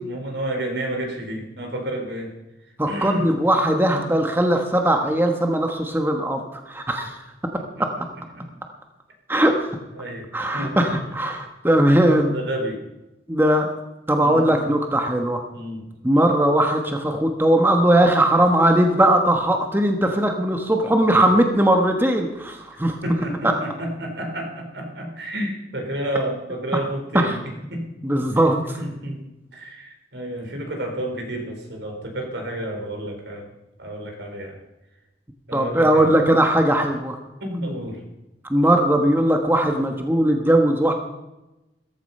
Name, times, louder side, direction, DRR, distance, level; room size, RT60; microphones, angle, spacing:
voice 1, 0.0-2.3 2.9-3.3 8.3-8.6 9.9-10.3 10.5-10.8 11.8-12.8 14.2-14.5 15.5-15.9 23.0-27.4 27.7-27.8 28.1-28.2 28.8-29.2 29.5-33.5 33.8-34.6 35.5-36.1 37.4-38.0, right 1 dB, 75° right, 3 dB, 4.3 m, -30 dB
voice 2, 2.8-7.2 7.8-7.9 9.3-9.8 10.3-12.3 13.3-13.7 14.1-15.4 16.0-23.0 26.7-26.8 27.1-27.3 28.0-28.8 35.5-37.2 38.5-40.9, right 1 dB, 10° right, 3 dB, 1.2 m, -19 dB
15.0 x 14.5 x 5.5 m, 0.98 s
head